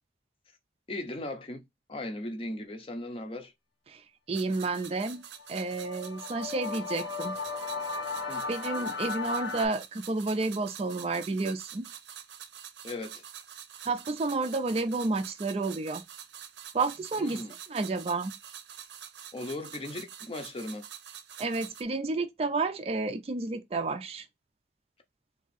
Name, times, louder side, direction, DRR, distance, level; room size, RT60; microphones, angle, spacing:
voice 1, 0.9-1.6 1.9-3.5 8.3-8.5 12.8-13.2 17.2-17.5 19.3-20.9, left 1 dB, 30° left, 0.6 m, -37 dB
voice 2, 4.3-5.2 5.5-7.4 8.5-11.9 13.8-16.0 16.7-17.4 17.7-18.3 21.4-24.2, right 3 dB, 35° right, 0.4 m, -30 dB
sound 1, 4.3-21.8, right 9 dB, 75° right, 0.6 m, -47 dB
sound 2, 5.4-9.7, left 4 dB, 75° left, 1.1 m, -35 dB
3.6 x 2.6 x 4.1 m
head